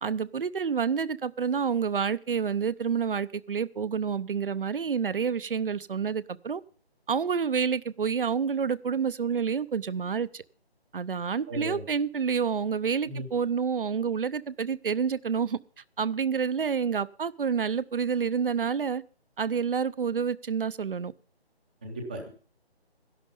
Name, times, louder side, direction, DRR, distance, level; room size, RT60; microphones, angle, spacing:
voice 1, 0.0-6.6 7.1-10.4 10.9-15.6 16.0-19.0 19.4-21.1, right 6 dB, 55° right, 0.7 m, -28 dB
voice 2, 11.5-11.8 13.1-13.3 21.8-22.3, equal, 10° right, 0.6 m, -36 dB
12.5 x 11.0 x 5.2 m
figure-of-eight pair, 160°, 32 cm